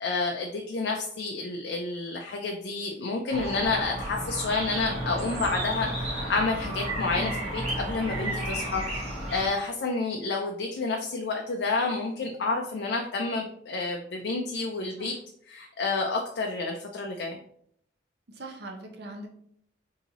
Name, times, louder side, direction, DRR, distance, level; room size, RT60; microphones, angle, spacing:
voice 1, 0.0-15.1 15.5-17.4, left 3 dB, 60° left, 2 dB, 0.4 m, -30 dB
sound 1, 3.3-9.5, right 1 dB, 35° right, 1.1 m, -32 dB
voice 2, 7.1-7.5 15.0-15.2 18.3-19.3, right 1 dB, 60° right, 2 dB, 0.7 m, -41 dB
3.9 x 2.7 x 2.9 m, 0.69 s
head